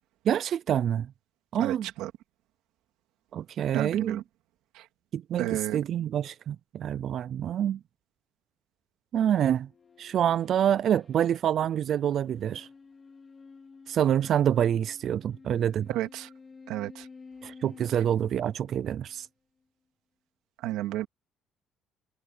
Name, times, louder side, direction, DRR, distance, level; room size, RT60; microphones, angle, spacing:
voice 1, 0.3-1.1 1.5-1.9 3.3-4.2 5.1-7.8 9.1-9.7 10.0-12.7 13.9-15.9 17.4-19.3, right 10 dB, 45° right, 0.4 m, -27 dB
voice 2, 1.6-2.1 3.7-4.2 4.7-4.8 5.4-5.8 15.9-16.3 16.7-17.1 20.6-21.1, right 15 dB, 85° right, 2.4 m, -31 dB
sound 1, 9.6-19.3, left 4 dB, 20° left, 4.7 m, -52 dB
cardioid pair, 165°, 0 cm